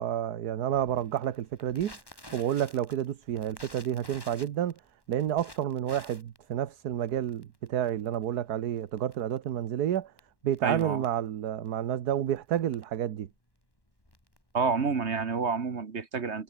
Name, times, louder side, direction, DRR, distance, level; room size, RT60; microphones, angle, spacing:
voice 1, 0.0-1.9 2.3-4.7 5.1-10.1 10.4-13.3, right 10 dB, 65° right, 1.5 m, -30 dB
Crackle, 0.7-14.9, left 1 dB, 10° left, 3.8 m, -53 dB
voice 2, 10.6-11.0 14.5-16.4, right 5 dB, 40° right, 1.6 m, -29 dB
omnidirectional pair, 1.9 m